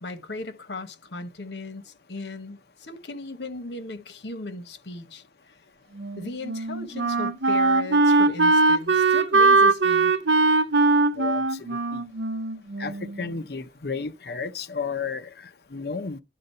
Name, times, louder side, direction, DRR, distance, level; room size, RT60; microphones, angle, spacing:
voice 1, 0.0-5.2 6.2-10.1, left 2 dB, 80° left, 1.2 m, -37 dB
Wind instrument woodwind instrument, 6.0-13.3, right 3 dB, 90° right, 0.8 m, -21 dB
voice 2, 11.1-12.1 12.8-16.2, left 5 dB, 65° left, 0.7 m, -33 dB
11.0 x 3.9 x 5.5 m
head